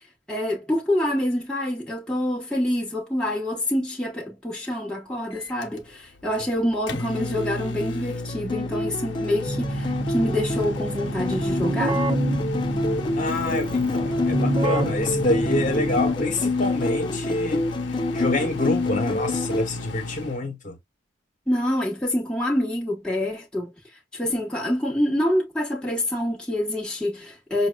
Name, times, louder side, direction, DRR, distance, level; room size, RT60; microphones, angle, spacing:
voice 1, 0.3-12.0 21.5-23.7 24.1-27.7, left 1 dB, 5° left, 1.0 m, -26 dB
Microwave oven, 5.3-20.4, left 2 dB, 65° left, 0.7 m, -34 dB
sound 1, 7.1-19.6, left 2 dB, 25° left, 0.4 m, -27 dB
Keyboard (musical), 9.5-16.3, right 2 dB, 30° right, 0.7 m, -28 dB
voice 2, 13.2-17.7 18.1-20.8, left 2 dB, 40° left, 1.2 m, -27 dB
6.1 x 2.2 x 2.3 m
head